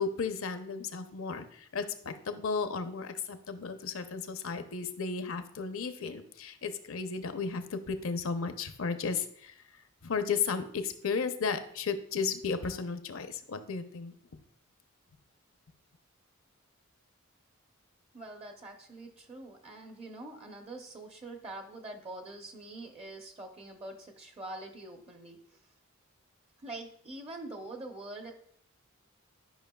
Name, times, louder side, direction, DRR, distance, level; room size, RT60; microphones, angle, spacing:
voice 1, 0.0-14.1, left 5 dB, 70° left, 8 dB, 0.7 m, -34 dB
voice 2, 18.1-25.6 26.6-28.3, right 2 dB, 30° right, 4 dB, 0.7 m, -44 dB
11.0 x 5.3 x 2.3 m, 0.65 s
head